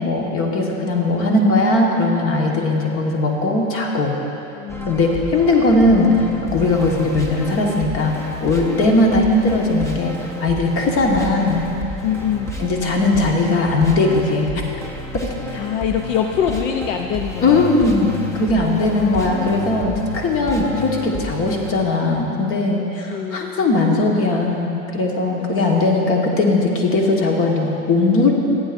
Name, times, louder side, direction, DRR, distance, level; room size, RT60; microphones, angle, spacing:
voice 1, 0.0-4.2 4.8-8.1 8.4-11.6 12.6-14.5 15.1-15.6 17.4-28.3, left 2 dB, 30° left, 0 dB, 1.4 m, -19 dB
voice 2, 1.2-1.9 2.4-3.2 4.5-5.0 8.8-9.2 12.0-12.6 15.5-17.7 18.6-19.5 23.1-23.6 25.7-26.1, left 8 dB, 65° left, 4 dB, 0.7 m, -26 dB
sound 1, 4.7-21.7, left 1 dB, 5° left, 0.7 m, -31 dB
14.5 x 9.6 x 2.6 m, 2.9 s
hypercardioid pair, 120°, 41 cm